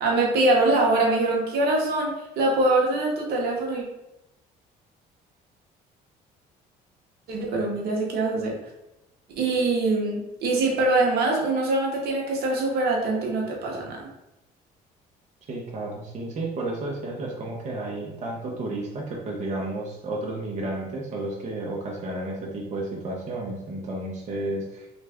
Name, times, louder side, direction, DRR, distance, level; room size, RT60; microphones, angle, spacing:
voice 1, 0.0-3.8 7.3-8.6 9.4-14.1, right 2 dB, 70° right, -1 dB, 0.9 m, -23 dB
voice 2, 15.5-24.9, right 2 dB, 45° right, -2 dB, 0.8 m, -32 dB
3.3 x 2.5 x 3.4 m, 0.92 s
cardioid pair, 110°, 17 cm